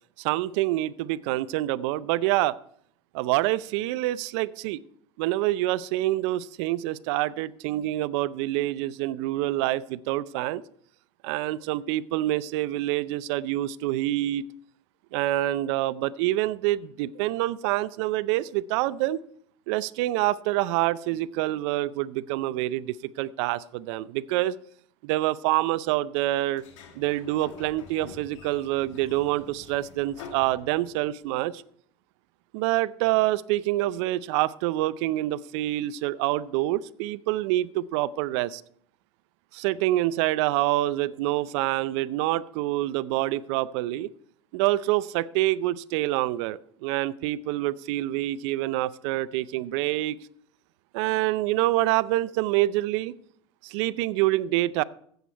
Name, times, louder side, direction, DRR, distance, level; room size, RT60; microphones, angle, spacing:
voice 1, 0.2-2.6 3.1-4.8 5.2-10.6 11.2-14.4 15.1-19.2 19.7-24.6 25.0-26.6 26.9-31.6 32.5-38.6 39.5-44.1 44.5-50.2 50.9-53.1 53.6-54.8, right 16 dB, 65° right, 19 dB, 0.5 m, -26 dB
Sliding door, 26.5-31.2, left 5 dB, 80° left, 2.1 m, -47 dB
15.0 x 8.0 x 4.5 m, 0.65 s
supercardioid pair, 110°, 16 cm